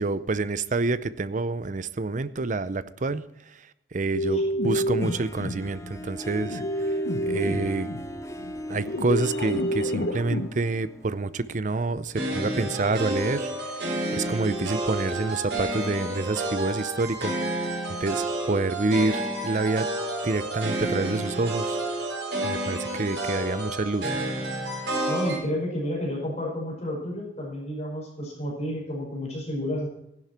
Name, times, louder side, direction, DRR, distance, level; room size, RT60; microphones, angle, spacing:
voice 1, 0.0-3.2 3.9-6.9 7.3-7.9 8.7-19.9 20.2-21.8 22.4-24.3, right 3 dB, 45° right, 15 dB, 0.6 m, -28 dB
sound 1, 4.1-10.5, equal, 70° left, 1.1 m, -29 dB
Harp, 5.0-11.9, equal, 15° left, 1.1 m, -38 dB
sound 2, 12.1-25.4, right 1 dB, 70° right, 4.8 m, -30 dB
voice 2, 25.1-29.9, equal, 40° left, -2 dB, 5.2 m, -31 dB
15.5 x 11.0 x 4.4 m, 0.82 s
head